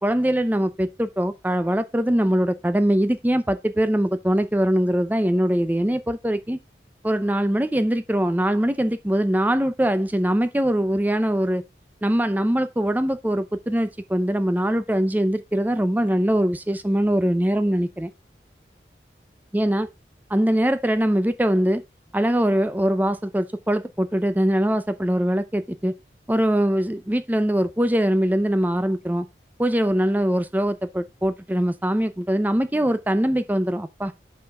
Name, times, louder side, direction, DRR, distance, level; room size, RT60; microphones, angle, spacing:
voice 1, 0.0-6.6 7.0-11.6 12.0-18.1 19.5-19.9 20.3-21.8 22.1-25.9 26.3-29.3 29.6-34.1, equal, 10° right, 0.5 m, -22 dB
5.7 x 5.6 x 4.8 m
head